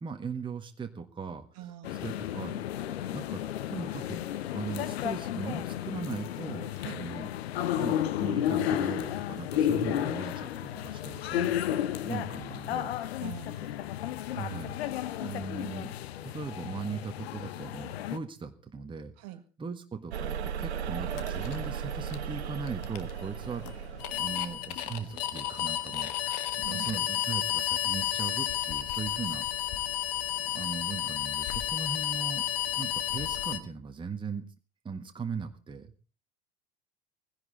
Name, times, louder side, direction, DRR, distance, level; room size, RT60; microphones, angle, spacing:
voice 1, 0.0-1.5 1.9-2.6 3.1-3.4 3.7-4.2 4.5-7.3 7.7-11.5 12.0-12.9 14.3-14.8 15.2-15.9 16.2-19.1 19.6-23.8 24.2-29.5 30.5-32.4 32.8-34.4 34.8-35.9, right 5 dB, 15° right, 5 dB, 1.5 m, -39 dB
voice 2, 1.5-2.1 6.8-7.0 13.2-13.8 19.2-19.4 26.6-27.1, right 13 dB, 45° right, 8 dB, 1.9 m, -44 dB
sound 1, 1.8-18.2, left 11 dB, 60° left, 1.0 m, -33 dB
sound 2, 20.1-24.6, right 7 dB, 70° right, 1.2 m, -36 dB
sound 3, 21.1-33.6, left 12 dB, 45° left, 1.6 m, -32 dB
18.0 x 16.5 x 4.1 m, 0.37 s
figure-of-eight pair, 75°, 34 cm